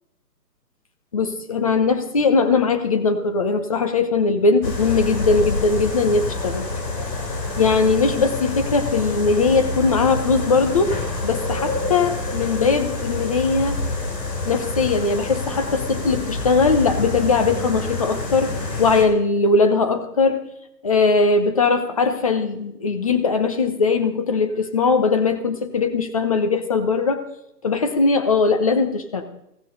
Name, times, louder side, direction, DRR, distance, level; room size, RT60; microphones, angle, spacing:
voice 1, 1.1-6.7 7.6-10.9 11.2-13.8 14.4-20.4 20.8-27.2 27.6-29.2, left 4 dB, 20° left, 8 dB, 0.8 m, -20 dB
sound 1, 4.6-19.0, left 2 dB, 80° left, 3.9 m, -27 dB
16.0 x 16.0 x 4.0 m, 0.80 s
hypercardioid pair, 165°, 49 cm